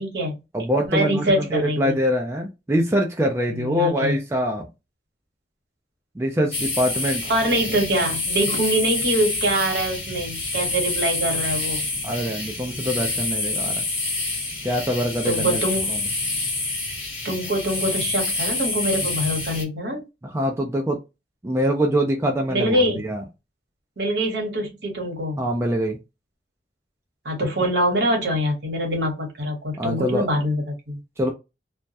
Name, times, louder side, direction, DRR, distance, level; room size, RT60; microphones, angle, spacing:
voice 1, 0.0-0.4 0.9-2.0 3.5-4.2 7.3-11.8 15.2-15.9 17.2-20.0 22.5-23.0 24.0-25.4 27.2-31.0, right 1 dB, 70° right, 0.9 m, -24 dB
voice 2, 0.5-4.7 6.2-7.2 12.0-13.8 14.6-15.6 15.9-16.0 20.2-21.0 21.4-23.2 25.4-26.0 29.8-30.3 31.2-31.3, equal, 15° right, 0.3 m, -24 dB
sound 1, 6.5-19.6, left 2 dB, 35° left, 1.0 m, -27 dB
2.2 x 2.1 x 2.7 m
head